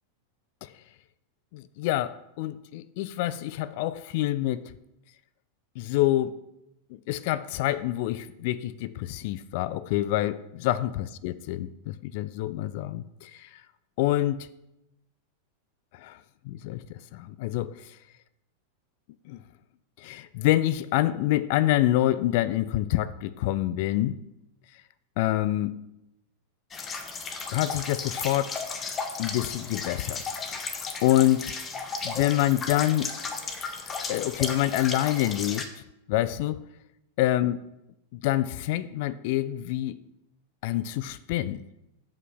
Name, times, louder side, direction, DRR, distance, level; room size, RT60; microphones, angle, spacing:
voice 1, 1.5-4.7 5.8-6.4 6.9-13.6 14.0-14.5 15.9-16.2 16.4-18.0 19.3-19.4 20.0-24.2 25.2-25.7 27.5-28.6 29.2-30.2 30.5-30.7 31.0-31.5 32.0-33.1 34.1-35.7 36.1-36.6 37.2-37.6 38.1-40.0 40.6-41.6, left 14 dB, 50° left, 15 dB, 0.4 m, -27 dB
sound 1, 26.7-35.7, left 5 dB, 25° left, 0.9 m, -34 dB
7.3 x 5.4 x 6.0 m, 0.87 s
figure-of-eight pair, 90°, 0 cm